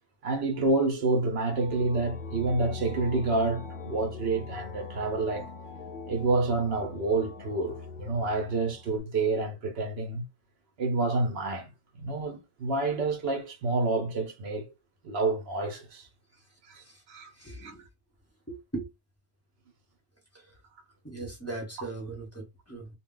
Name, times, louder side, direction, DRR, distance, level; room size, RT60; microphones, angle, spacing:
voice 1, 0.2-5.4 6.1-10.2 10.8-14.7 15.0-16.1 16.7-17.3 17.6-17.7, right 3 dB, 70° right, 0.9 m, -28 dB
sound 1, 1.4-9.0, left 4 dB, 55° left, 0.7 m, -41 dB
voice 2, 17.4-17.8 18.5-18.9 20.3-20.4 21.0-22.9, right 3 dB, 15° left, 0.8 m, -39 dB
2.2 x 2.1 x 3.6 m
omnidirectional pair, 1.1 m